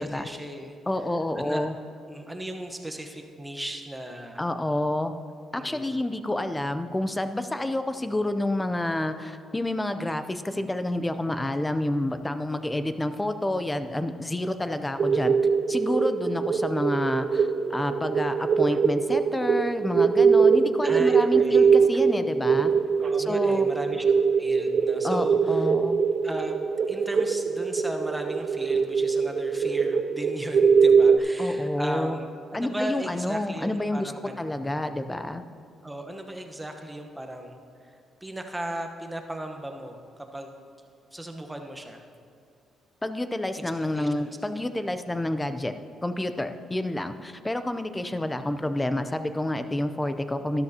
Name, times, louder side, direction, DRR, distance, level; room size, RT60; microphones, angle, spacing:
voice 1, 0.0-0.8 1.4-1.6 2.1-4.4 5.6-5.9 20.8-21.7 23.0-25.7 26.2-34.4 35.8-38.0 38.2-40.6 41.1-42.0 43.9-44.7, right 1 dB, 10° right, 4 dB, 1.1 m, -37 dB
voice 2, 0.9-1.7 4.4-5.1 5.5-15.3 15.7-22.7 23.2-23.7 25.0-26.0 31.4-32.2 32.5-34.1 34.4-35.4 43.0-45.7 46.0-50.6, left 1 dB, 15° left, 10 dB, 0.6 m, -29 dB
sound 1, 15.0-31.2, right 5 dB, 55° right, 0.5 m, -22 dB
13.0 x 11.5 x 2.9 m, 2.3 s
cardioid pair, 90°, 0 cm